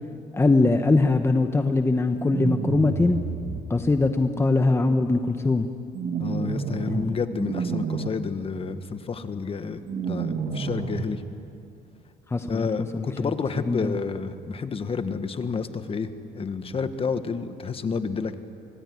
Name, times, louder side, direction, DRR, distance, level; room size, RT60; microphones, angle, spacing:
voice 1, 0.3-3.2 3.7-5.7 6.9-7.2 12.3-12.7 12.9-13.3 13.7-14.0, left 3 dB, 15° left, 7 dB, 1.0 m, -22 dB
sound 1, 2.2-3.6 5.9-7.0 7.4-8.1 9.9-11.0, right 5 dB, 55° right, 2.1 m, -29 dB
voice 2, 6.2-11.2 12.5-18.3, left 5 dB, 35° left, 10 dB, 1.5 m, -30 dB
26.0 x 19.0 x 9.7 m, 2.5 s
cardioid pair, 110°, 17 cm